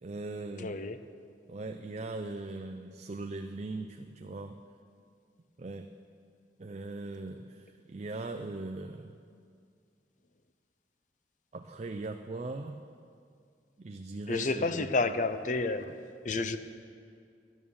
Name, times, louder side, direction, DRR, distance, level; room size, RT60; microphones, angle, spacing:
voice 1, 0.0-0.8 1.5-4.6 5.6-5.9 6.6-9.2 11.5-12.9 13.8-14.9, right 2 dB, 40° right, 5 dB, 0.4 m, -40 dB
voice 2, 0.6-1.0 14.3-16.6, left 3 dB, 45° left, 11 dB, 0.6 m, -30 dB
12.5 x 10.5 x 7.1 m, 2.3 s
head